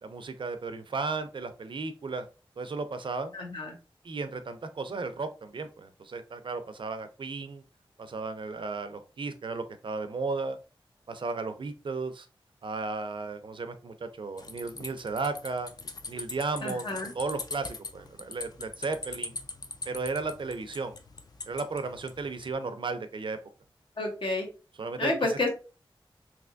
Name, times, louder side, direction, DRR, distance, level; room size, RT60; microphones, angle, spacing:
voice 1, 0.0-2.3 2.6-3.3 4.0-7.6 8.0-10.6 11.1-12.3 12.6-15.7 16.1-19.4 19.9-21.0 21.5-23.4 24.8-25.4, right 3 dB, 60° right, 9 dB, 0.5 m, -34 dB
voice 2, 3.3-3.7 16.6-17.1 24.0-24.5 25.0-25.5, left 2 dB, 65° left, 1 dB, 1.0 m, -30 dB
sound 1, 14.4-22.5, left 3 dB, 45° left, 0.5 m, -42 dB
3.3 x 2.8 x 2.5 m, 0.34 s
wide cardioid pair, 85°, 9 cm